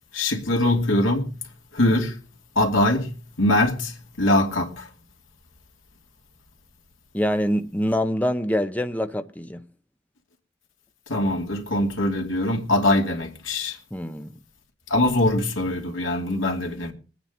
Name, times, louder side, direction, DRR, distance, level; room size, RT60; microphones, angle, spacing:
voice 1, 0.1-1.3 1.7-2.2 2.5-4.9 11.1-13.8 14.9-16.9, left 1 dB, 80° left, 2.7 m, -22 dB
voice 2, 7.1-9.7 13.9-14.4, equal, 10° left, 0.7 m, -25 dB
21.5 x 9.3 x 3.9 m
head